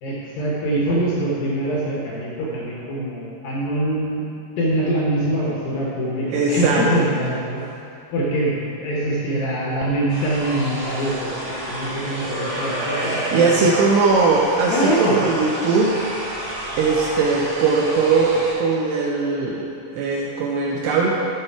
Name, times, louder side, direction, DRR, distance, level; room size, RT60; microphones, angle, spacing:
voice 1, 0.0-4.3 4.6-7.6 8.1-13.5 14.7-15.2, right 1 dB, 70° left, -5 dB, 2.4 m, -24 dB
voice 2, 6.3-7.1 13.0-15.9 16.8-21.1, right 4 dB, 80° right, -2 dB, 2.4 m, -20 dB
sound 1, 10.1-18.5, right 1 dB, 55° right, 0.4 m, -29 dB
12.0 x 5.2 x 4.6 m, 2.6 s
omnidirectional pair, 5.3 m